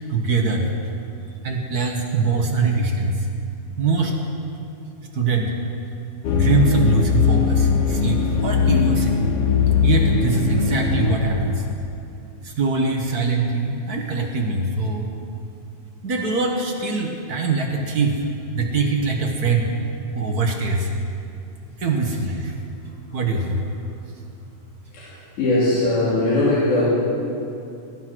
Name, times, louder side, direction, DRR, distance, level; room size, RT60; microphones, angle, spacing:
voice 1, 0.1-0.7 1.4-3.3 3.8-4.2 5.1-5.5 6.3-9.3 9.8-11.7 12.4-15.0 16.0-18.2 18.5-19.7 20.1-20.9 21.8-22.5 23.1-23.6, right 4 dB, 55° right, 1 dB, 1.0 m, -22 dB
sound 1, 6.2-11.7, left 6 dB, 70° left, 1.4 m, -20 dB
voice 2, 24.9-26.9, left 2 dB, 85° left, -9 dB, 4.2 m, -20 dB
19.5 x 10.5 x 6.1 m, 2.6 s
omnidirectional pair, 3.5 m